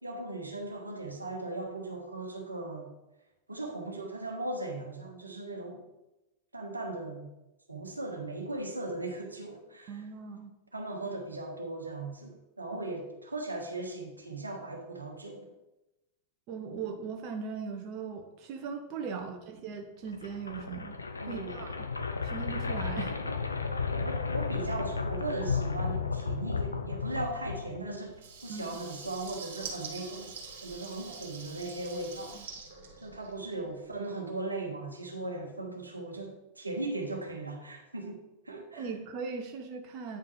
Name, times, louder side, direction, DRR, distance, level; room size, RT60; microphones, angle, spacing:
voice 1, 0.0-2.9 3.5-5.8 6.5-7.3 7.7-10.0 10.7-15.5 19.1-19.4 21.2-21.6 24.0-30.4 30.6-32.4 33.0-38.9, right 2 dB, 80° right, 2 dB, 1.2 m, -38 dB
voice 2, 9.9-10.5 16.5-21.0 21.3-21.9 22.2-23.2 28.5-28.6 32.3-32.5 38.7-40.2, right 5 dB, 40° right, 4 dB, 0.9 m, -39 dB
sound 1, 20.1-28.1, left 5 dB, 80° left, 0.6 m, -33 dB
Water tap faucet / Liquid, 28.1-33.6, right 5 dB, 55° right, 1.9 m, -45 dB
8.9 x 5.7 x 3.2 m, 0.96 s
figure-of-eight pair, 90°, 0 cm